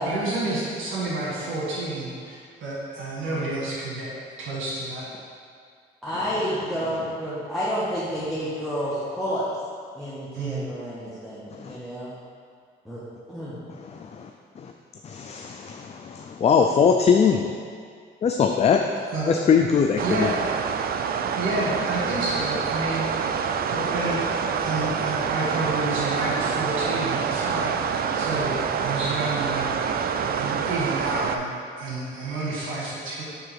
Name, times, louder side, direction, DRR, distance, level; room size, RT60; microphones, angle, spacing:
voice 1, 0.0-5.1 10.3-10.6 19.1-19.4 20.0-20.4 21.3-23.1 23.7-24.2 24.6-33.2, right 2 dB, 80° right, -6 dB, 1.6 m, -30 dB
voice 2, 6.0-9.4 9.9-12.1 12.8-13.0 13.3-13.6, equal, ahead, -10 dB, 1.3 m, -29 dB
voice 3, 13.8-14.3 14.6-14.7 15.0-17.5 18.2-18.9 19.3-20.3, left 6 dB, 35° left, 4 dB, 0.4 m, -21 dB
sound 1, 20.0-31.4, right 6 dB, 50° right, 0.4 m, -26 dB
6.9 x 3.6 x 4.7 m, 2.1 s
cardioid pair, 90°, 20 cm